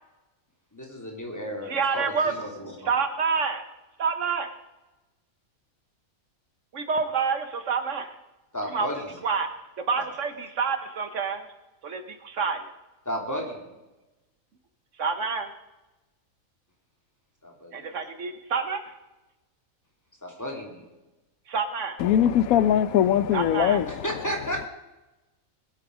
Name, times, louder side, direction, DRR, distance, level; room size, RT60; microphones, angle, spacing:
voice 1, 0.7-2.9 8.5-9.1 13.0-13.7 17.4-18.0 20.2-20.8 24.0-24.7, equal, 10° left, 2.8 m, -33 dB
voice 2, 1.7-2.3 2.9-3.6 4.0-4.5 6.7-8.1 8.7-8.9 9.2-9.5 9.8-11.4 11.8-12.7 15.0-15.5 17.7-18.8 21.5-22.0 23.3-23.8, right 5 dB, 65° right, 1.4 m, -27 dB
voice 3, 22.0-24.3, left 10 dB, 90° left, 1.1 m, -22 dB
20.5 x 8.8 x 5.1 m
omnidirectional pair, 1.4 m